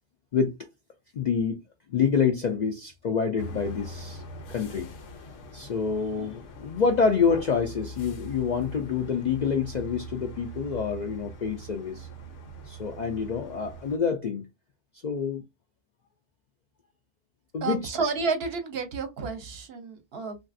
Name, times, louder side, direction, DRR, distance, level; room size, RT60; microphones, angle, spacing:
voice 1, 1.1-1.6 1.9-4.2 4.5-4.9 5.5-12.1 12.7-14.5 15.0-15.4 17.5-17.8, left 6 dB, 60° left, 0.4 m, -27 dB
sound 1, 3.4-14.0, right 1 dB, 80° left, 1.1 m, -42 dB
voice 2, 17.6-20.4, right 4 dB, 60° right, 0.9 m, -30 dB
3.1 x 2.5 x 2.5 m
omnidirectional pair, 1.2 m